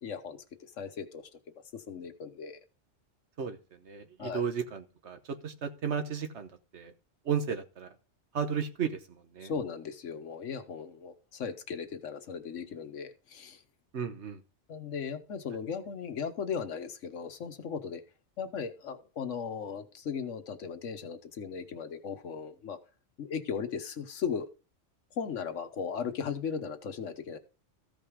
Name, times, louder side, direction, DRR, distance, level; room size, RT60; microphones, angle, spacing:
voice 1, 0.0-1.3 1.7-2.6 4.2-4.4 9.4-13.6 14.7-18.0 18.4-22.8 23.2-24.5 25.1-27.4, left 6 dB, 90° left, 1.4 m, -37 dB
voice 2, 3.4-6.9 7.2-7.9 8.3-9.5 13.9-14.4, right 7 dB, 70° right, 1.3 m, -34 dB
14.5 x 5.3 x 5.0 m
omnidirectional pair, 1.2 m